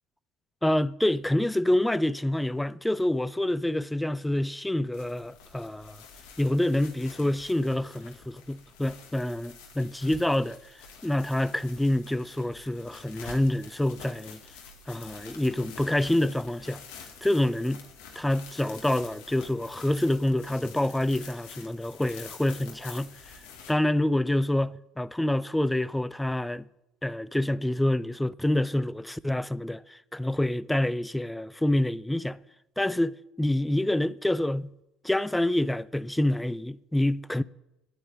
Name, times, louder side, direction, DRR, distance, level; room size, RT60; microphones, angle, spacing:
voice 1, 0.6-6.0 6.4-10.6 11.0-14.4 14.9-16.8 17.2-17.8 18.2-23.1 23.7-26.6 27.0-32.4 32.8-34.7 35.0-37.4, left 1 dB, 5° left, 0.4 m, -27 dB
sound 1, 4.9-23.7, left 5 dB, 80° left, 2.3 m, -48 dB
11.5 x 5.5 x 8.9 m
supercardioid pair, 80°, 0 cm